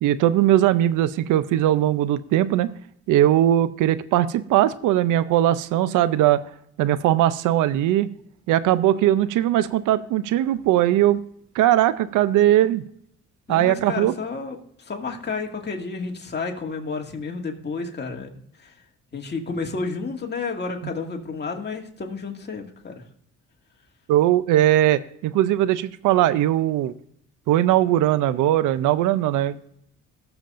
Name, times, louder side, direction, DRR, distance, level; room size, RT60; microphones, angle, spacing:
voice 1, 0.0-2.7 3.1-6.4 6.8-8.1 8.5-11.2 11.6-12.8 13.5-14.1 24.1-26.9 27.5-29.6, right 13 dB, 90° right, 15 dB, 0.6 m, -19 dB
voice 2, 13.5-18.3 18.6-18.7 19.1-23.0, left 4 dB, 35° left, 1 dB, 2.2 m, -31 dB
19.0 x 7.1 x 2.5 m, 0.69 s
cardioid pair, 90°, 30 cm